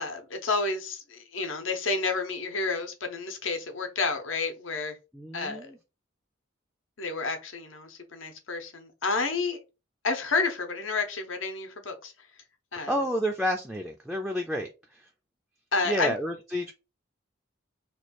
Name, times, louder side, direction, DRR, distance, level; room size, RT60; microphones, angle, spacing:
voice 1, 0.0-5.0 5.3-5.7 7.0-9.6 10.0-12.1 12.7-12.9 15.7-16.2, left 4 dB, 80° left, 0.8 m, -30 dB
voice 2, 5.1-5.8 12.8-15.1 15.9-16.7, equal, ahead, 0.3 m, -30 dB
3.1 x 2.3 x 4.2 m
head